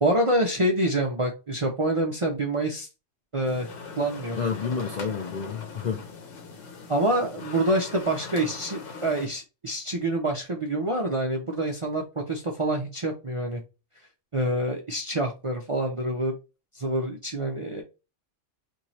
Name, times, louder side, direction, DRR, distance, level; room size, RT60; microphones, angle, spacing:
voice 1, 0.0-2.9 3.3-3.7 4.0-4.4 6.9-13.6 14.3-16.3 16.7-17.8, right 1 dB, 40° right, 0.4 m, -26 dB
sound 1, 3.4-9.3, left 4 dB, 75° left, 1.1 m, -41 dB
voice 2, 4.4-6.1, left 5 dB, 55° left, 0.5 m, -29 dB
3.0 x 2.7 x 4.0 m
omnidirectional pair, 1.3 m